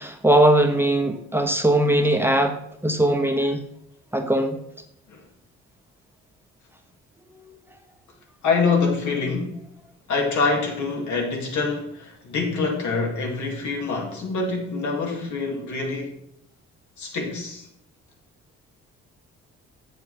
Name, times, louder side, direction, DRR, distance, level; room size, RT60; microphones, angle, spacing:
voice 1, 0.0-2.6 2.8-3.6 4.1-4.6, right 1 dB, 10° right, 1.0 m, -20 dB
voice 2, 8.4-9.6 10.1-16.2 17.0-17.7, left 4 dB, 70° left, 2.5 m, -25 dB
7.8 x 6.8 x 4.2 m
cardioid pair, 90°, 30 cm